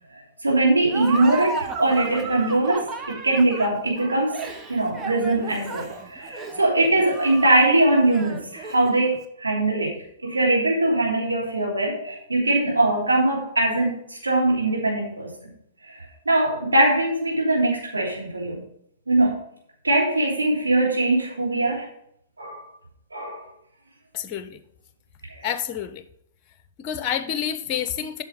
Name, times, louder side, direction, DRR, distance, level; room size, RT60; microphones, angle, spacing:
voice 1, 0.4-9.9 10.2-15.3 15.8-18.6 19.1-19.4 19.8-21.9 22.4-22.7 23.1-23.4 25.3-25.5, right 2 dB, 85° right, 3.2 m, -22 dB
Laughter, 0.9-9.2, right 4 dB, 20° right, 1.1 m, -35 dB
voice 2, 24.1-24.6 25.4-26.0 26.8-28.2, left 9 dB, 30° left, 1.0 m, -28 dB
9.4 x 6.1 x 5.2 m
figure-of-eight pair, 115°, 0 cm